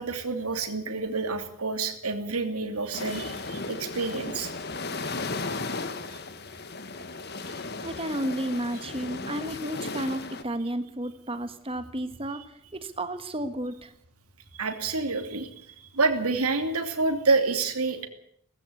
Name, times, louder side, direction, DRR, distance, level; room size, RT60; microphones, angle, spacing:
voice 1, 0.0-4.5 6.1-6.2 14.5-18.1, right 3 dB, 85° right, 5 dB, 2.7 m, -28 dB
sound 1, 2.9-10.4, left 3 dB, 45° left, 1.5 m, -35 dB
voice 2, 7.8-13.9, right 1 dB, 25° right, 10 dB, 1.4 m, -32 dB
18.0 x 15.5 x 9.7 m, 0.67 s
head